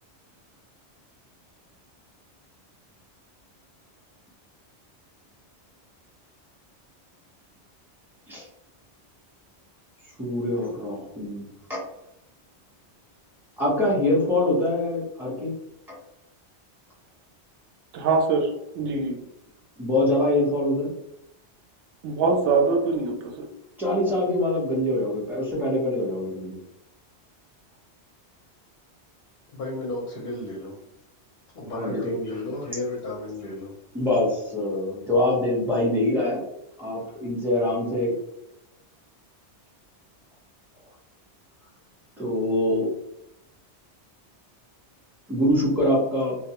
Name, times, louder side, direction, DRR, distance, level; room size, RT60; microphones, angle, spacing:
voice 1, 10.2-11.8 13.6-15.5 19.8-20.9 23.8-26.6 31.7-32.1 33.9-36.4 36.8-38.1 42.2-42.9 45.3-46.4, left 1 dB, ahead, -7 dB, 0.8 m, -24 dB
voice 2, 18.0-18.4 18.7-19.2 22.0-23.5, right 4 dB, 90° right, 2 dB, 0.9 m, -23 dB
voice 3, 29.5-30.8 31.5-33.7, left 2 dB, 55° left, -4 dB, 0.7 m, -33 dB
2.3 x 2.2 x 2.8 m, 0.82 s
omnidirectional pair, 1.2 m